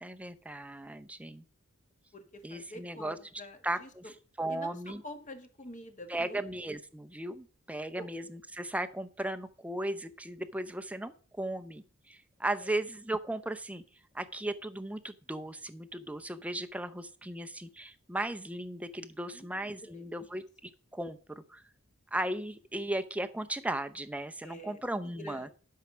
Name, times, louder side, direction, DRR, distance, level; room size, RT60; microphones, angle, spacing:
voice 1, 0.0-1.4 2.4-3.2 3.6-4.0 4.4-5.0 6.1-13.8 14.1-21.2 21.5-21.6 22.1-25.5, right 1 dB, 5° right, 9 dB, 0.6 m, -36 dB
voice 2, 2.5-3.9 4.5-6.4 8.0-8.1 12.6-12.7 19.3-19.5 19.9-20.4 24.4-25.5, left 1 dB, 35° left, 5 dB, 1.6 m, -47 dB
12.0 x 5.6 x 6.1 m, 0.41 s
head